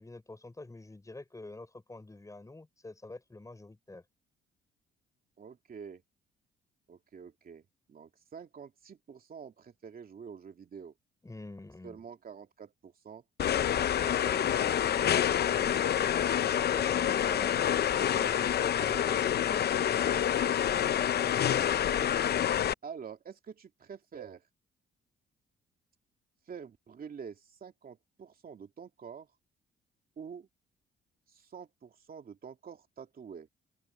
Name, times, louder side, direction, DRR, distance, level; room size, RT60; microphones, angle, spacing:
voice 1, 0.0-4.0 11.2-12.0 15.5-17.8 18.0-20.4 21.2-21.4, left 2 dB, 15° left, 5.6 m, -46 dB
voice 2, 5.4-6.0 6.9-10.9 11.8-13.2 13.7-15.5 21.4-22.2 22.5-24.5 26.5-29.3 30.2-30.5 31.3-33.5, right 6 dB, 45° right, 2.7 m, -47 dB
sound 1, 13.4-22.7, left 10 dB, 55° left, 0.7 m, -27 dB
open air
cardioid pair, 90°, 20 cm